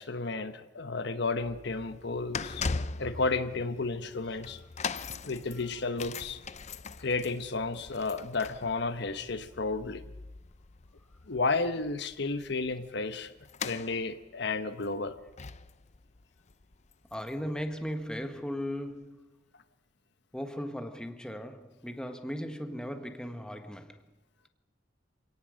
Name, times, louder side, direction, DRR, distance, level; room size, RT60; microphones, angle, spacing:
voice 1, 0.0-2.7 3.0-4.6 5.2-6.4 7.0-10.0 11.3-13.3 13.6-15.1, left 3 dB, 65° left, 1.2 m, -32 dB
sound 1, 1.3-17.6 17.9-18.1 18.9-19.0, left 4 dB, 40° left, 0.6 m, -41 dB
voice 2, 3.0-3.4 4.2-4.5 5.5-5.8 17.1-19.4 20.3-24.1, equal, 5° left, 1.5 m, -38 dB
26.5 x 18.0 x 6.5 m
head